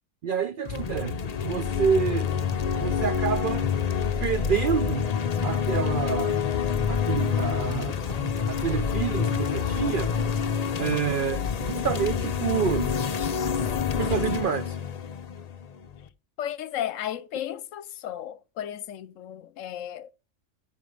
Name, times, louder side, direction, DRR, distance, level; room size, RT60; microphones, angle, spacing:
voice 1, 0.2-2.3 2.8-3.7 4.2-5.1 5.4-6.4 6.9-10.2 10.8-12.9 14.0-14.8, right 7 dB, 70° right, 0.5 m, -28 dB
sound 1, 0.6-16.1, left 7 dB, 50° left, 0.5 m, -27 dB
voice 2, 16.4-20.1, left 11 dB, 70° left, 1.0 m, -34 dB
14.0 x 4.9 x 3.2 m
omnidirectional pair, 1.4 m